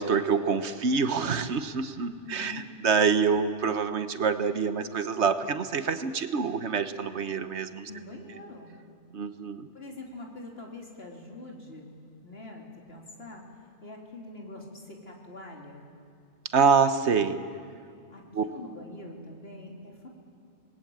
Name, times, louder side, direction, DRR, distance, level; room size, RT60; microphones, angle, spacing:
voice 1, 0.0-7.9 9.1-9.7 16.5-17.4 18.3-18.4, right 5 dB, 65° right, 10 dB, 1.4 m, -26 dB
voice 2, 2.2-2.6 7.9-8.7 9.7-11.9 12.2-13.5 13.8-15.8 18.1-20.1, left 2 dB, 55° left, 0 dB, 3.7 m, -44 dB
27.0 x 20.5 x 8.8 m, 2.2 s
omnidirectional pair, 1.2 m